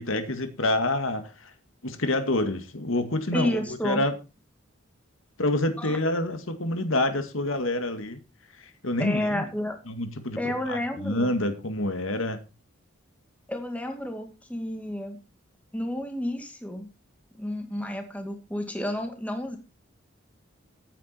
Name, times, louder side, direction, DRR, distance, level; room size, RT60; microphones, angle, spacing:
voice 1, 0.0-1.5 1.8-4.1 5.4-8.2 8.6-9.4 9.9-12.4, left 1 dB, 70° left, 9 dB, 2.0 m, -27 dB
voice 2, 3.3-4.0 5.8-6.0 9.0-9.8 10.4-11.3 13.5-15.2 15.7-16.9 17.3-19.6, left 1 dB, 5° left, 5 dB, 2.1 m, -31 dB
16.0 x 9.2 x 4.4 m, 0.30 s
head